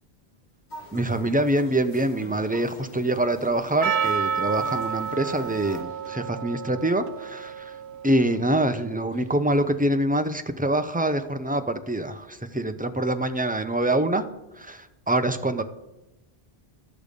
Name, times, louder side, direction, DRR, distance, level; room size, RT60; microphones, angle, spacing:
sound 1, 0.7-5.8, left 1 dB, 45° left, 1.7 m, -44 dB
voice 1, 0.9-7.8 8.0-14.3 14.6-15.6, right 1 dB, 10° right, 7 dB, 0.5 m, -25 dB
Percussion, 3.8-8.8, right 7 dB, 85° right, 0.9 m, -30 dB
12.5 x 6.8 x 5.2 m, 0.97 s
omnidirectional pair, 1.1 m